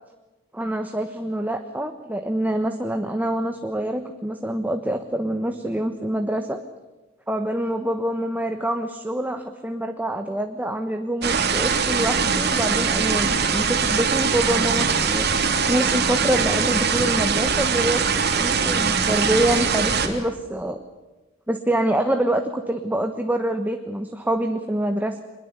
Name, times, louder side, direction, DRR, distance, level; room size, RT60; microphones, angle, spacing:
voice 1, 0.5-6.6 7.3-18.0 18.4-20.8 21.5-25.2, right 1 dB, 10° right, 6 dB, 1.2 m, -26 dB
sound 1, 11.2-20.1, right 5 dB, 55° right, 3.0 m, -22 dB
24.5 x 21.5 x 8.2 m, 1.1 s
head